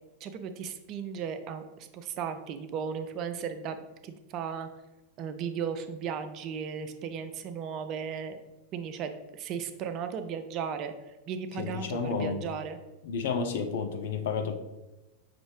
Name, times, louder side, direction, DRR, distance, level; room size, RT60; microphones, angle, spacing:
voice 1, 0.2-4.7 5.2-8.4 8.7-12.8, right 7 dB, 35° right, 9 dB, 0.4 m, -36 dB
voice 2, 11.6-12.4 13.0-14.6, left 5 dB, 55° left, 5 dB, 0.5 m, -31 dB
5.9 x 2.6 x 3.2 m, 1.1 s
figure-of-eight pair, 90°, 0 cm